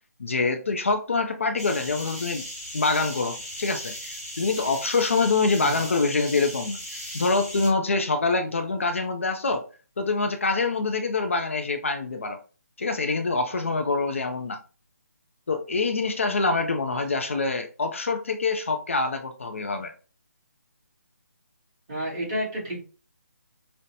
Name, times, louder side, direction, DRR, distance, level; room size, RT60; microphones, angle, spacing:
voice 1, 0.2-2.4 2.7-9.6 10.0-12.4 12.8-14.6 15.5-19.9, left 3 dB, 50° left, 0.4 m, -25 dB
sound 1, 1.6-7.7, left 1 dB, 5° left, 1.1 m, -37 dB
voice 2, 21.9-22.8, equal, 20° right, 1.4 m, -30 dB
5.2 x 2.1 x 2.7 m
hypercardioid pair, 175°, 9 cm